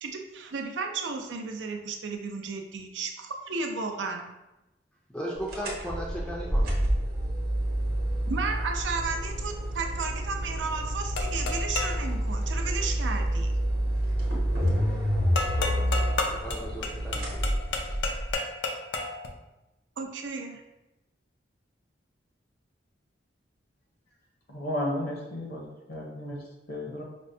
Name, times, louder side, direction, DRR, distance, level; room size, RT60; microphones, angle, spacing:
voice 1, 0.0-4.3 8.3-13.5 20.0-20.6, right 4 dB, 75° right, 3 dB, 0.5 m, -33 dB
voice 2, 5.1-6.7 15.5-16.1 16.4-17.4, equal, 5° left, -4 dB, 0.4 m, -37 dB
sound 1, 5.5-18.3, equal, 55° right, 0.9 m, -28 dB
sound 2, 11.2-12.1 15.4-19.3, left 3 dB, 90° left, 0.4 m, -31 dB
voice 3, 24.5-26.4 26.7-27.0, left 1 dB, 60° left, -2 dB, 0.7 m, -33 dB
5.0 x 2.1 x 2.6 m, 0.98 s
head